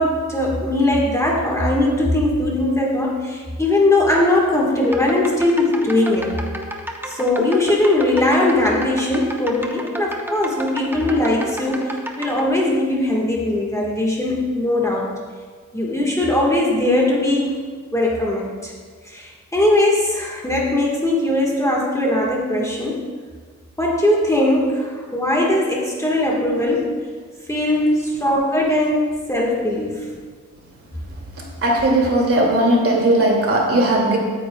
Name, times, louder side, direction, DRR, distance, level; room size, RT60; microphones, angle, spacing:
voice 1, 0.0-6.3 7.0-15.1 15.7-17.6 17.9-18.7 19.0-23.0 23.8-27.0 27.5-30.1, left 1 dB, 10° left, -3 dB, 1.5 m, -20 dB
sound 1, 4.8-12.5, right 1 dB, 5° right, 0.9 m, -32 dB
voice 2, 31.6-34.2, right 1 dB, 50° right, -1 dB, 2.4 m, -17 dB
16.0 x 9.6 x 2.3 m, 1.5 s
wide cardioid pair, 135°, 30 cm